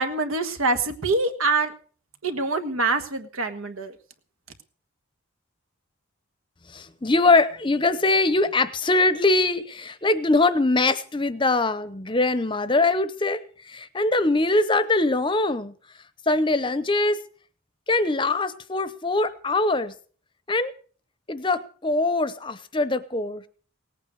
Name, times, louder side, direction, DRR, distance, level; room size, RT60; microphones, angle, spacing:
voice 1, 0.0-1.7 2.2-4.0, right 3 dB, 80° right, 8 dB, 1.6 m, -25 dB
voice 2, 6.7-15.7 16.3-17.2 17.9-19.9 20.5-20.7 21.3-23.4, left 2 dB, 25° left, 13 dB, 0.8 m, -22 dB
18.0 x 9.0 x 6.4 m, 0.43 s
head